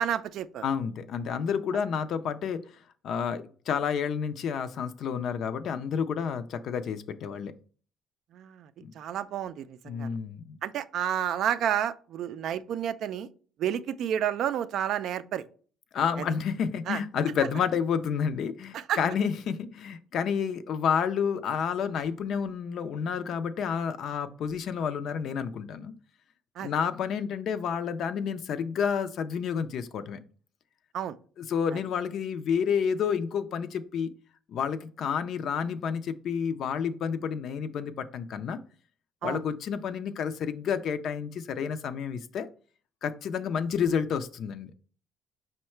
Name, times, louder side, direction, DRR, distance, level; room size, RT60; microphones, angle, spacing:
voice 1, 0.0-0.6 8.3-8.7 8.9-10.1 10.6-13.3 13.6-15.5 16.2-16.3 16.9-17.0 18.7-19.0 26.6-26.7 30.9-31.2 39.2-39.4, right 10 dB, 70° right, 0.3 m, -30 dB
voice 2, 0.6-2.6 3.0-7.5 8.8-8.9 9.8-10.6 15.9-25.9 26.6-30.2 31.4-34.1 34.5-38.6 39.2-42.5 43.0-44.7, left 7 dB, 65° left, 0.4 m, -30 dB
5.5 x 2.1 x 4.4 m
cardioid pair, 105°, 0 cm